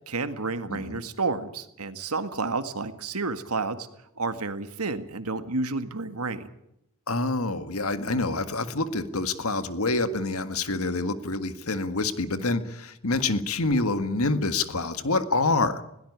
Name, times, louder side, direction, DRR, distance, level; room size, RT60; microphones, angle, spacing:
voice 1, 0.1-3.9 4.2-6.5, right 3 dB, 85° right, 10 dB, 1.9 m, -30 dB
voice 2, 0.7-1.0 7.1-15.8, left 3 dB, 75° left, 11 dB, 1.8 m, -27 dB
21.5 x 17.5 x 9.6 m, 0.81 s
head